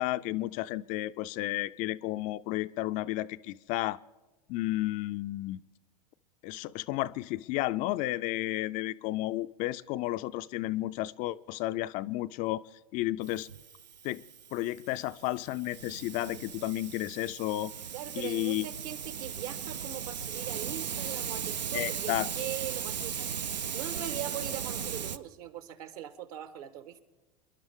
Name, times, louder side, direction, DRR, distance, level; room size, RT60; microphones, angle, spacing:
voice 1, 0.0-4.0 4.5-5.6 6.4-12.6 12.9-13.5 14.0-14.2 14.5-17.7 18.2-18.7 21.7-22.3, left 16 dB, 40° left, 13 dB, 0.4 m, -32 dB
Hiss, 13.2-25.2, right 7 dB, 90° right, 0.5 m, -37 dB
voice 2, 17.9-23.3 23.7-27.0, right 11 dB, 60° right, 11 dB, 1.4 m, -41 dB
28.0 x 11.0 x 3.6 m, 1.1 s
hypercardioid pair, 100°, 21 cm